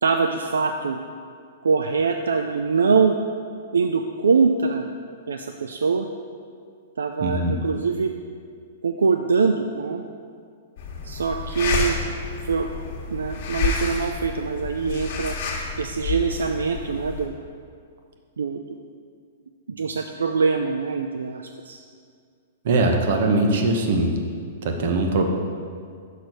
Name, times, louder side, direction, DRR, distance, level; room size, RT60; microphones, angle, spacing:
voice 1, 0.0-1.0 1.6-3.2 3.7-4.9 5.3-6.1 7.0-8.1 8.8-10.0 11.0-12.2 12.5-12.7 13.1-15.4 15.8-17.3 18.4-18.6 19.7-21.8, right 5 dB, 90° right, 5 dB, 0.3 m, -23 dB
voice 2, 7.2-7.6 22.6-24.2 24.6-25.3, right 2 dB, 60° right, 3 dB, 0.9 m, -21 dB
sound 1, 10.8-17.3, left 4 dB, 55° left, 1.2 m, -29 dB
6.3 x 4.5 x 5.3 m, 2.2 s
hypercardioid pair, 130°, 0 cm